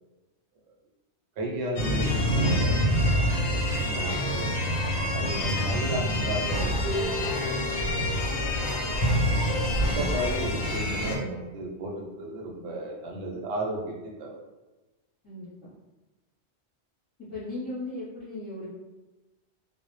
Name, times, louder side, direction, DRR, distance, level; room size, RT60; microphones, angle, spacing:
voice 1, 1.4-2.8 3.5-4.5 5.1-7.6 9.9-14.4, right 1 dB, 75° right, -1 dB, 0.8 m, -34 dB
sound 1, 1.8-11.2, equal, 65° left, 0.7 m, -26 dB
Keyboard (musical), 6.8-10.1, left 3 dB, 35° right, 0.8 m, -37 dB
voice 2, 9.8-10.1 15.2-15.7 17.3-18.7, left 2 dB, 25° left, -12 dB, 0.7 m, -37 dB
2.0 x 2.0 x 3.0 m, 1.1 s
omnidirectional pair, 1.2 m